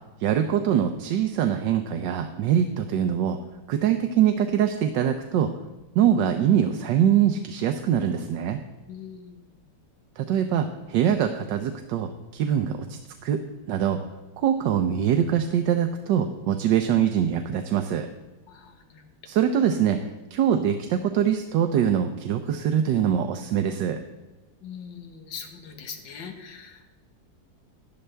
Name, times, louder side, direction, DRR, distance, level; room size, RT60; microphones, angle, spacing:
voice 1, 0.2-3.4 3.7-5.5 5.9-8.6 10.2-13.4 13.7-14.0 14.4-18.1 19.3-20.0 20.3-24.0, right 9 dB, 80° right, 6 dB, 1.3 m, -23 dB
voice 2, 8.9-9.5 18.5-19.2 24.6-26.8, left 6 dB, 85° left, 4 dB, 1.9 m, -41 dB
12.0 x 11.0 x 3.4 m, 1.2 s
omnidirectional pair, 1.9 m